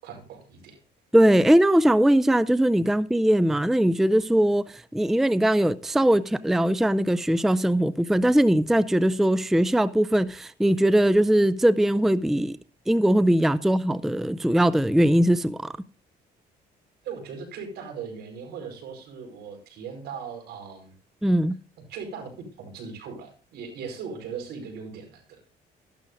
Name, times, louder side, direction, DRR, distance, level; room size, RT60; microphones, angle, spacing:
voice 1, 0.0-0.8 17.0-20.9 21.9-25.5, right 6 dB, 75° right, 4.8 m, -39 dB
voice 2, 1.1-12.6 12.9-15.7 21.2-21.6, right 1 dB, ahead, 0.4 m, -21 dB
13.0 x 12.0 x 2.6 m
cardioid pair, 110°, 17 cm